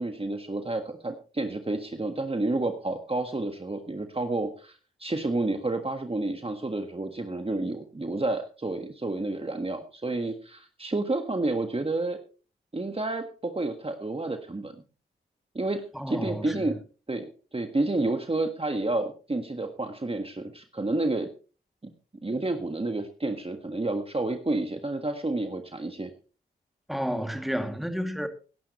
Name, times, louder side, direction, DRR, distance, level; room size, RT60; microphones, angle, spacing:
voice 1, 0.0-12.2 12.7-14.7 15.5-15.8 16.1-16.8 17.1-17.3 17.5-21.3 22.2-26.1, right 2 dB, 25° right, 1.6 m, -30 dB
voice 2, 15.9-16.7 26.9-28.3, equal, ahead, 2.5 m, -31 dB
17.5 x 11.0 x 3.1 m
cardioid pair, 40°, 21 cm